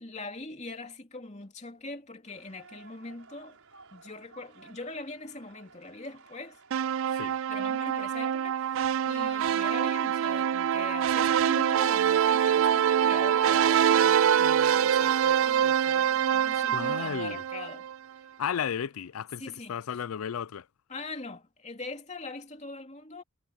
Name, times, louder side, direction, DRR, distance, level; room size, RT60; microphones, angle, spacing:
voice 1, 0.0-3.6 3.9-6.6 7.5-17.9 19.4-20.0 20.9-23.2, left 3 dB, 30° left, 2.8 m, -42 dB
sound 1, 2.3-19.6, right 4 dB, 90° right, 5.6 m, -57 dB
sound 2, 6.7-17.9, right 9 dB, 70° right, 0.3 m, -25 dB
voice 2, 16.7-17.4 18.4-19.4 19.7-20.7, left 8 dB, 85° left, 0.4 m, -33 dB
head